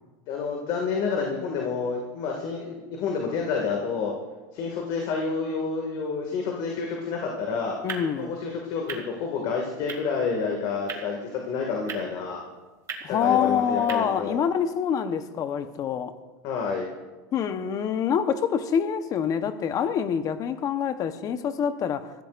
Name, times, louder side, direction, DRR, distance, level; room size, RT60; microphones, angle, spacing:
voice 1, 0.3-4.1 4.5-7.8 8.2-12.4 13.1-14.4 16.4-16.9, left 5 dB, 55° left, 2.1 m, -29 dB
sound 1, 7.3-14.0, right 5 dB, 30° right, 2.1 m, -42 dB
voice 2, 7.8-8.3 13.0-16.1 17.3-22.1, left 8 dB, 35° left, 1.0 m, -26 dB
22.5 x 15.5 x 2.6 m
supercardioid pair, 125°, 10 cm